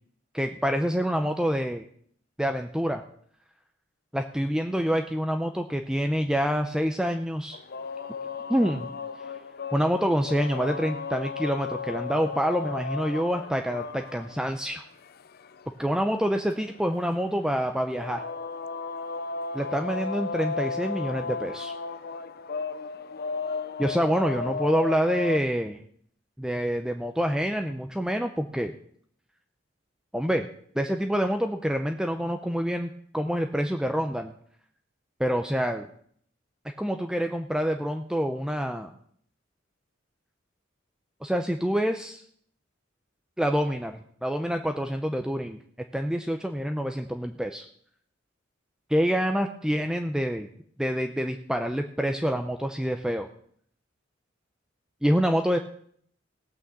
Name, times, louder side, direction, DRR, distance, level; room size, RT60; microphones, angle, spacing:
voice 1, 0.3-1.8 2.4-3.0 4.1-7.6 8.5-8.9 9.7-14.8 15.8-18.2 19.5-21.7 23.8-25.8 26.4-28.7 30.1-30.5 30.7-34.3 35.2-35.9 36.8-38.9 41.2-42.2 43.4-45.6 45.9-47.7 48.9-50.5 50.8-53.3 55.0-55.6, equal, 5° right, 6 dB, 0.6 m, -27 dB
sound 1, 7.5-25.4, left 5 dB, 50° left, 0.5 m, -35 dB
17.0 x 6.3 x 7.1 m, 0.63 s
head